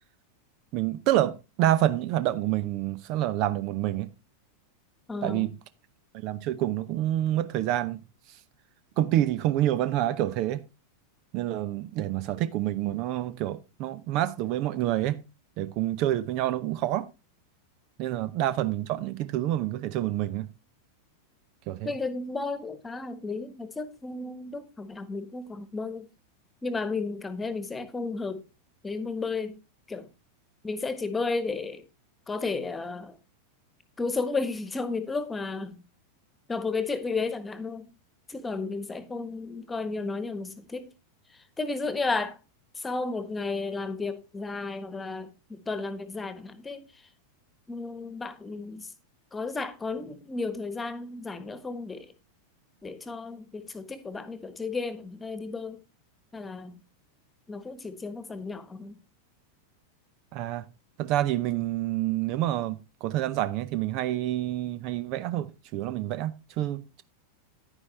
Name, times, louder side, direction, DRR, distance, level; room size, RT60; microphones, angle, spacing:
voice 1, 0.7-4.1 5.2-5.5 6.2-8.0 9.0-10.6 11.3-15.2 15.6-17.1 18.0-20.5 21.7-21.9 60.3-60.7 61.0-67.0, right 13 dB, 40° right, 0.6 m, -28 dB
voice 2, 5.1-5.5 21.8-26.1 26.6-28.4 28.8-29.6 29.9-30.1 30.6-31.8 32.3-33.2 34.0-35.8 36.5-37.9 38.3-40.9 41.3-42.4 42.7-46.8 47.7-48.9 49.3-52.1 52.8-55.8 56.3-56.8 57.5-59.0, left 3 dB, 15° left, 1.3 m, -33 dB
11.0 x 9.7 x 3.2 m
figure-of-eight pair, 90°, 0 cm